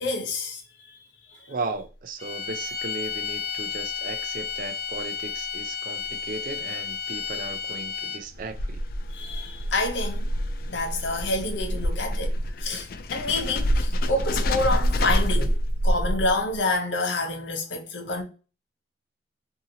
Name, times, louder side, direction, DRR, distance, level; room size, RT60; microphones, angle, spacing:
voice 1, 0.0-1.5 9.1-10.3 10.7-15.6 15.8-18.2, left 2 dB, 75° left, 0.7 m, -28 dB
voice 2, 1.5-8.8, right 3 dB, 45° right, 0.4 m, -36 dB
sound 1, 2.2-8.4, left 7 dB, 35° left, 1.4 m, -32 dB
sound 2, 8.2-16.6, equal, 50° left, 0.3 m, -27 dB
2.7 x 2.7 x 2.7 m
head